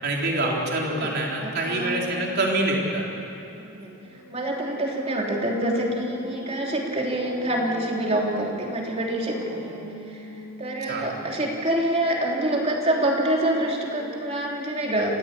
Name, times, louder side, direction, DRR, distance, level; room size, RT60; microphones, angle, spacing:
voice 1, 0.0-3.1 10.9-11.2, right 2 dB, 50° right, -2 dB, 4.1 m, -25 dB
voice 2, 1.4-2.0 3.5-9.8 10.1-10.3 10.6-15.2, right 1 dB, 30° right, -1 dB, 3.3 m, -26 dB
sound 1, 4.0-11.8, right 1 dB, 80° right, 6.2 m, -41 dB
29.0 x 16.0 x 8.5 m, 2.8 s
head